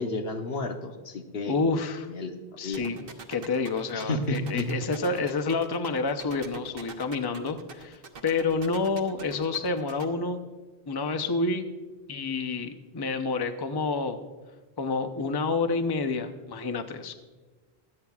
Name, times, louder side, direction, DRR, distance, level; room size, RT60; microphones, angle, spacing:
voice 1, 0.0-1.6 2.1-2.4 2.6-2.8 3.9-4.7, left 2 dB, 70° left, 5 dB, 1.2 m, -31 dB
voice 2, 1.4-2.1 2.6-10.4 10.9-11.7 12.1-14.2 14.8-17.1, left 3 dB, 25° left, 7 dB, 0.6 m, -29 dB
sound 1, 2.7-10.0, right 5 dB, 60° right, 1.1 m, -43 dB
25.0 x 8.6 x 2.4 m, 1.3 s
omnidirectional pair, 1.1 m